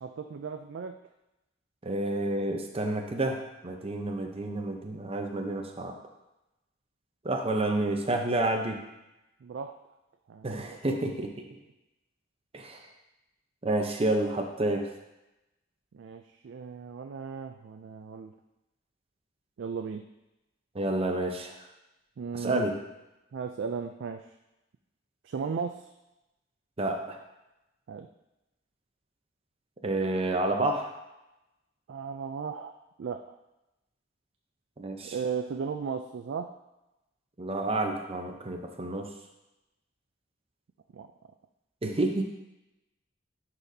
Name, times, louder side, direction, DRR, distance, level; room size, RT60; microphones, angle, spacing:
voice 1, 0.0-1.0 9.4-9.7 10.3-10.8 15.9-18.3 19.6-20.1 22.2-22.7 23.3-24.2 25.2-25.9 27.9-28.1 31.9-32.7 33.0-33.4 35.1-36.5 40.9-41.1, right 6 dB, 65° right, 6 dB, 0.4 m, -36 dB
voice 2, 1.8-5.9 7.2-8.8 10.4-11.4 12.5-12.8 13.6-14.9 20.7-21.6 22.3-22.8 26.8-27.2 29.8-30.9 34.8-35.1 37.4-39.1 41.8-42.2, right 2 dB, 30° right, 3 dB, 0.7 m, -29 dB
11.0 x 4.2 x 2.7 m, 0.96 s
head